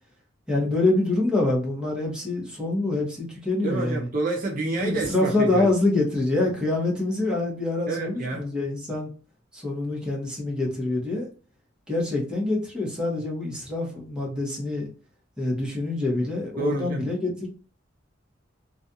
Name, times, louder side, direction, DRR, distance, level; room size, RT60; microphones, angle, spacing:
voice 1, 0.5-4.1 4.8-9.1 9.5-11.3 11.9-14.9 15.4-17.5, left 2 dB, 5° right, 0.8 m, -25 dB
voice 2, 3.6-5.7 7.9-8.5 16.6-17.1, right 3 dB, 45° right, 0.5 m, -28 dB
2.4 x 2.3 x 2.7 m
head